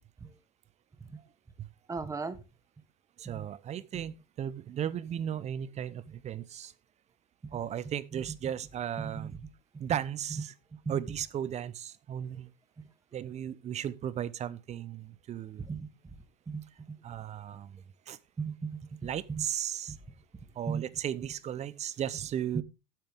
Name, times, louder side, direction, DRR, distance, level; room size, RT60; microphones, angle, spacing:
voice 1, 1.9-2.4 3.2-3.5 9.0-9.3 10.8-11.0 15.6-15.9 16.5-17.0 18.4-18.8 19.3-19.4 19.9-20.0 20.7-20.8 22.5-22.6, right 5 dB, 15° right, 1.3 m, -36 dB
voice 2, 3.2-6.7 7.5-9.4 9.8-10.5 10.9-12.5 13.1-15.7 17.0-18.2 19.0-20.0 20.6-22.6, right 10 dB, 30° right, 0.8 m, -36 dB
12.0 x 7.6 x 3.6 m
hypercardioid pair, 100°, 21 cm